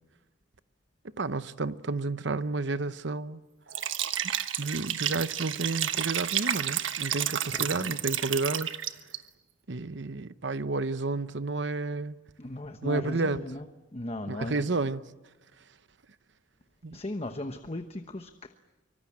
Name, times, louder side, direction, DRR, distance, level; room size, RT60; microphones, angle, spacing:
voice 1, 1.2-3.4 4.6-8.7 9.7-12.2 12.8-13.5 14.3-15.1 16.8-17.0, right 3 dB, 65° right, 0.9 m, -31 dB
Liquid, 3.7-9.2, right 10 dB, 85° right, 1.3 m, -31 dB
voice 2, 7.5-7.9 12.4-13.6 13.9-14.6 16.9-18.6, left 1 dB, 30° left, 1.1 m, -37 dB
24.5 x 24.5 x 8.7 m
head